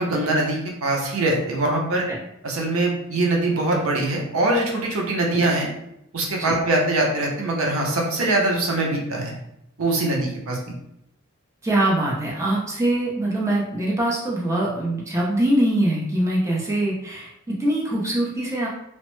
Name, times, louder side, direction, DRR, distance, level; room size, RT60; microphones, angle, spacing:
voice 1, 0.0-2.1 2.4-5.7 6.1-9.3 9.8-10.6, right 2 dB, 85° right, -1 dB, 0.7 m, -22 dB
voice 2, 11.6-18.7, right 1 dB, 15° right, -4 dB, 0.6 m, -23 dB
3.0 x 2.1 x 3.1 m, 0.79 s
head